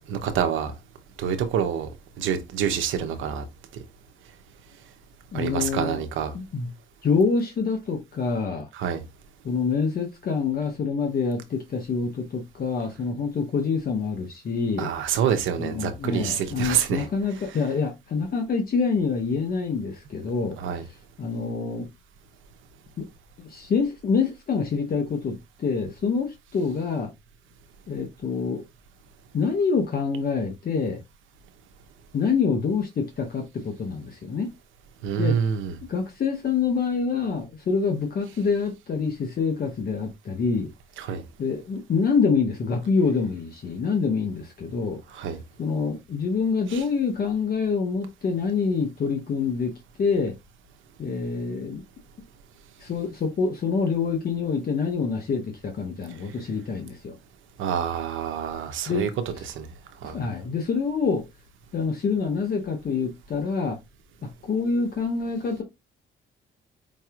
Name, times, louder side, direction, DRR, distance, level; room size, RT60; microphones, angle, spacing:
voice 1, 0.1-0.7 1.2-1.9 2.2-3.5 5.3-6.3 8.7-9.0 14.8-17.1 20.6-20.8 35.0-35.7 41.0-41.2 45.2-45.4 46.7-46.8 57.6-59.1 59.5-59.7 60.0-60.2, right 8 dB, 85° right, 0.9 m, -27 dB
voice 2, 5.3-6.0 6.3-6.7 7.0-8.7 9.4-14.9 15.5-20.6 20.9-21.9 23.0-23.1 23.4-27.1 27.9-28.6 29.3-31.0 32.1-34.5 35.2-35.4 35.9-40.7 41.4-45.0 45.6-49.7 50.0-50.4 51.0-51.8 52.8-57.1 58.9-59.0 60.0-61.3 61.7-63.8 64.2-65.6, left 5 dB, 50° left, 1.0 m, -26 dB
5.2 x 2.8 x 2.5 m
cardioid pair, 90°, 20 cm